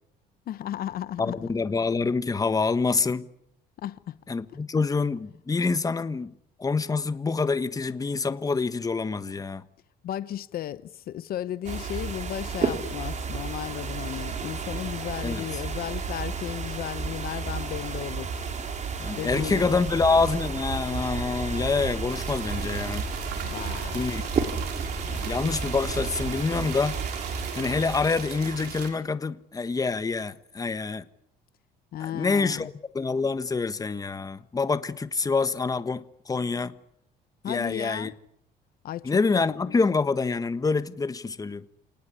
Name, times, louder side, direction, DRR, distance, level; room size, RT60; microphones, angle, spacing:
voice 1, 0.5-1.4 3.8-4.2 10.0-18.4 19.2-19.9 23.4-23.9 31.9-32.7 37.4-38.1 38.8-39.8, left 12 dB, 60° left, 1.0 m, -35 dB
voice 2, 1.2-3.3 4.3-6.3 6.6-9.7 15.2-15.4 19.0-23.1 23.9-24.2 25.1-27.0 27.5-31.0 32.0-36.7 37.4-38.1 39.0-41.6, left 4 dB, 20° left, 1.4 m, -26 dB
sound 1, 11.6-28.4, right 5 dB, 45° right, 4.8 m, -32 dB
sound 2, 19.3-26.3, equal, 15° right, 6.1 m, -39 dB
sound 3, 22.1-28.9, right 8 dB, 75° right, 5.8 m, -38 dB
28.5 x 19.5 x 9.9 m
cardioid pair, 110°, 17 cm